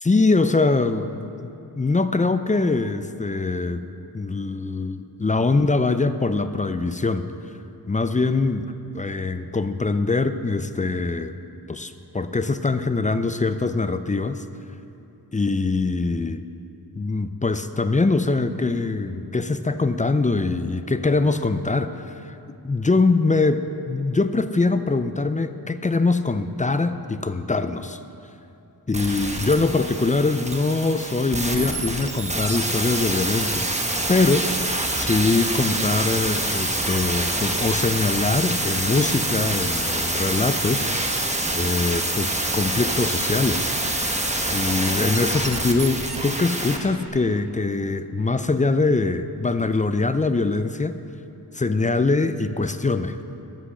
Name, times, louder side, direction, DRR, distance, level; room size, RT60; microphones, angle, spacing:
voice 1, 0.0-1.5 1.8-3.9 4.1-7.3 7.9-11.4 11.7-14.4 15.3-16.5 16.9-22.4 22.6-28.0 28.9-34.6 34.9-40.9 41.5-43.7 44.5-51.0 51.5-53.2, left 3 dB, 20° left, 11 dB, 0.3 m, -23 dB
sound 1, 28.9-46.8 47.1-47.2, right 1 dB, 15° right, 1.0 m, -26 dB
13.5 x 6.1 x 6.3 m, 2.8 s
wide cardioid pair, 90°, 39 cm